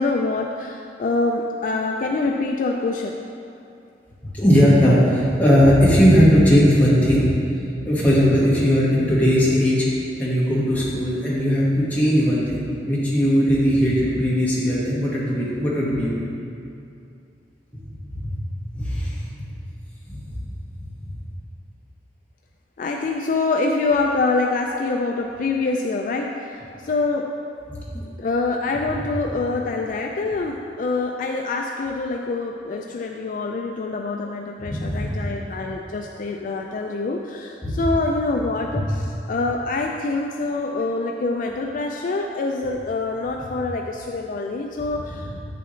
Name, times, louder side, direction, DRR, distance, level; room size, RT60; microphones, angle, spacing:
voice 1, 0.0-3.2 22.8-27.3 28.2-45.4, left 3 dB, 50° left, 2 dB, 0.3 m, -25 dB
voice 2, 4.3-7.3 7.8-9.9 10.2-16.2 18.1-18.3 18.7-19.2 20.1-20.4 21.0-21.1 27.7-28.0 34.6-35.2 37.6-37.7 38.7-38.8 45.3-45.4, equal, 10° left, -8 dB, 1.6 m, -18 dB
8.3 x 6.9 x 3.2 m, 2.6 s
head